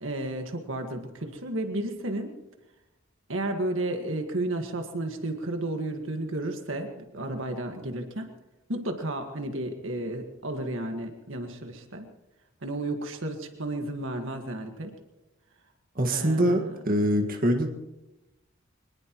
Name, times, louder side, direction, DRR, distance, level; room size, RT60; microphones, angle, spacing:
voice 1, 0.0-2.3 3.3-8.3 8.7-12.1 12.6-14.9 16.0-16.8, right 1 dB, 75° right, 5 dB, 1.7 m, -32 dB
voice 2, 16.0-17.7, equal, 45° right, 3 dB, 1.8 m, -24 dB
23.5 x 20.0 x 3.1 m, 1.0 s
head